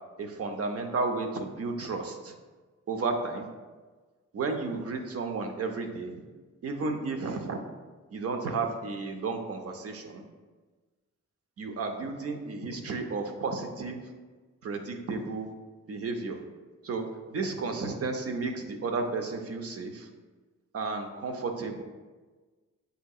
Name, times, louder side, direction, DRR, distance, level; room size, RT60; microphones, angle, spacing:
voice 1, 0.2-2.3 2.9-3.5 4.3-6.2 6.6-7.6 8.1-10.2 11.6-14.0 14.6-15.5 15.9-16.4 16.8-20.1 20.7-21.8, right 3 dB, 50° right, 5 dB, 0.6 m, -33 dB
7.6 x 2.7 x 2.3 m, 1.3 s
wide cardioid pair, 115°, 31 cm